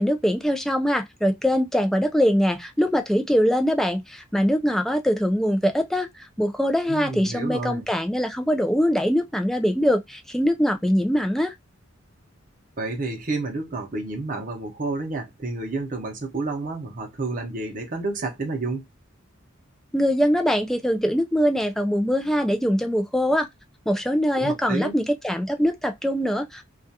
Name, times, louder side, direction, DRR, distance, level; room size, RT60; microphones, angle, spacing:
voice 1, 0.0-11.5 19.9-23.5 23.9-26.6, equal, ahead, 0.3 m, -22 dB
voice 2, 6.9-7.9 12.8-18.8 24.4-24.9, right 3 dB, 40° right, 0.7 m, -30 dB
2.4 x 2.3 x 2.6 m
head